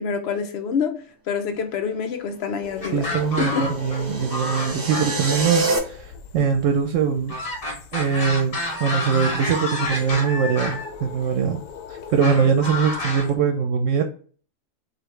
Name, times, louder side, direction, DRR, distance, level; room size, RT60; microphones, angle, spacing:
voice 1, 0.0-3.1 3.4-3.7, left 6 dB, 60° left, 0.8 m, -27 dB
sound 1, 2.6-13.4, left 7 dB, 85° left, 1.0 m, -41 dB
sound 2, 2.8-4.0 4.3-5.5 7.3-10.9 12.2-13.3, left 2 dB, 45° left, 1.5 m, -29 dB
voice 2, 2.9-7.4 7.9-11.6 11.9-14.0, right 6 dB, 70° right, 0.9 m, -22 dB
sound 3, 3.2-5.8, right 2 dB, 45° right, 0.9 m, -27 dB
4.8 x 2.5 x 3.1 m
omnidirectional pair, 1.4 m